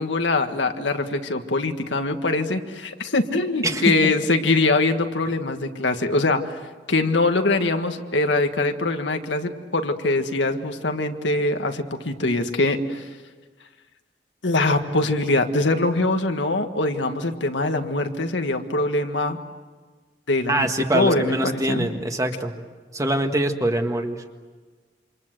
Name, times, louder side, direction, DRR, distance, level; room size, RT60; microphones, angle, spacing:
voice 1, 0.0-6.4 6.9-13.0 14.4-19.4 20.3-21.9, left 2 dB, 85° left, 6 dB, 1.7 m, -23 dB
voice 2, 20.5-22.5 22.9-24.2, right 1 dB, 20° right, 5 dB, 1.7 m, -24 dB
28.0 x 26.0 x 7.8 m, 1.4 s
head